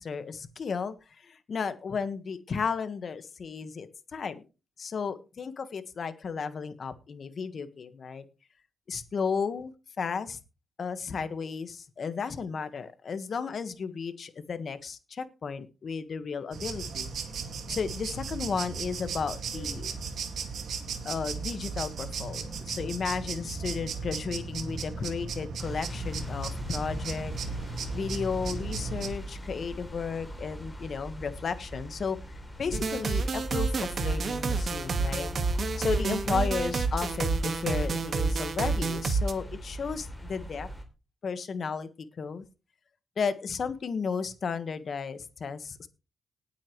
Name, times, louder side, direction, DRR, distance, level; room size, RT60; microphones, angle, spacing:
voice 1, 0.0-4.4 4.8-8.2 8.9-9.7 10.0-10.4 10.8-17.1 17.7-19.9 21.0-27.3 27.9-32.2 32.6-35.3 35.8-40.7 41.2-42.4 43.2-45.9, left 5 dB, 50° left, 11 dB, 1.5 m, -34 dB
sound 1, 16.5-29.1, right 5 dB, 70° right, 2.1 m, -36 dB
sound 2, 25.6-40.8, equal, 10° left, 3.1 m, -40 dB
sound 3, 32.7-39.3, right 4 dB, 45° right, 1.7 m, -29 dB
19.0 x 8.6 x 3.2 m, 0.30 s
wide cardioid pair, 130°, 0 cm